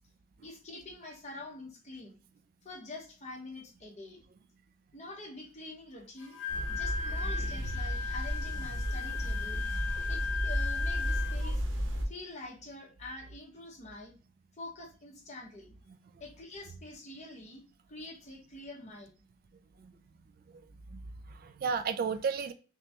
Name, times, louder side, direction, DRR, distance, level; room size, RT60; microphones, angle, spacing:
voice 1, 0.4-2.2 2.6-4.2 4.9-6.4 6.7-9.6 10.1-11.6 12.0-14.1 14.5-15.8 16.2-17.6 17.9-19.2, left 2 dB, 35° left, 0 dB, 1.0 m, -46 dB
Wind instrument woodwind instrument, 6.2-11.5, left 6 dB, 65° left, 1.4 m, -37 dB
sound 1, 6.5-12.1, equal, 75° right, 0.9 m, -33 dB
voice 2, 20.9-22.5, right 5 dB, 50° right, 11 dB, 0.3 m, -33 dB
5.9 x 2.2 x 2.8 m, 0.36 s
head